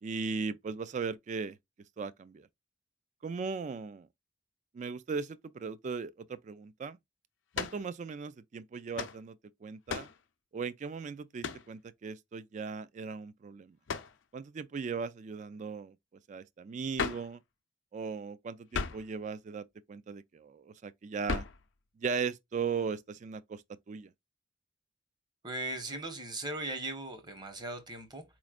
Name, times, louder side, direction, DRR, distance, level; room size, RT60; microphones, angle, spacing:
voice 1, 0.0-1.6 2.0-2.5 3.2-4.1 4.7-7.0 7.6-10.1 10.5-13.8 14.3-16.0 16.3-17.4 17.9-21.4 22.0-23.6 23.9-24.1, right 5 dB, 40° right, 0.3 m, -38 dB
sound 1, 7.5-7.9 9.0-9.2 9.9-10.2 11.4-11.7 13.9-14.2 17.0-17.3 18.7-19.1 21.3-21.6, left 5 dB, 85° left, 0.5 m, -35 dB
voice 2, 25.4-28.2, right 2 dB, 25° right, 0.9 m, -38 dB
4.2 x 3.1 x 2.3 m
head